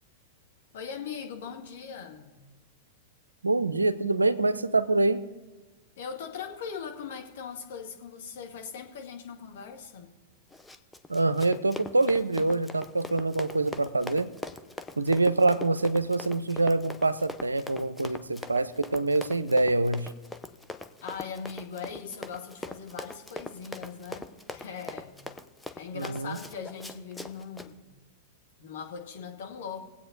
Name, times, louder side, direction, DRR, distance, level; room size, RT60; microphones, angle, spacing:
voice 1, 0.7-2.4 6.0-10.1 21.0-25.2 25.8-27.9 28.6-29.9, left 6 dB, 65° left, 2 dB, 2.0 m, -40 dB
voice 2, 3.4-5.2 11.1-14.3 15.0-20.1 25.9-26.4, right 2 dB, 90° right, 14 dB, 0.6 m, -25 dB
Run, 10.5-27.7, left 2 dB, 5° left, 0.7 m, -42 dB
20.5 x 8.4 x 4.0 m, 1.2 s
figure-of-eight pair, 100°, 0 cm